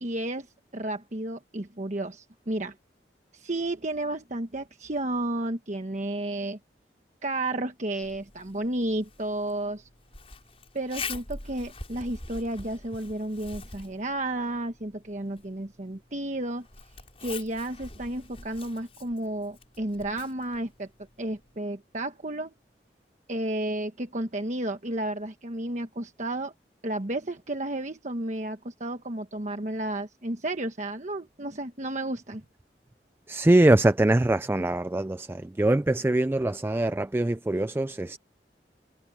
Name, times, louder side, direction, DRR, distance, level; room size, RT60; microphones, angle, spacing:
voice 1, 0.0-0.5 0.7-2.7 3.3-6.6 7.2-9.9 10.7-16.7 17.2-20.9 21.2-22.5 23.3-26.5 26.8-32.4, right 1 dB, 45° right, 1.2 m, -32 dB
Zipper (clothing), 8.0-21.6, left 4 dB, 35° left, 6.5 m, -44 dB
voice 2, 33.3-38.2, right 1 dB, 15° right, 0.3 m, -23 dB
head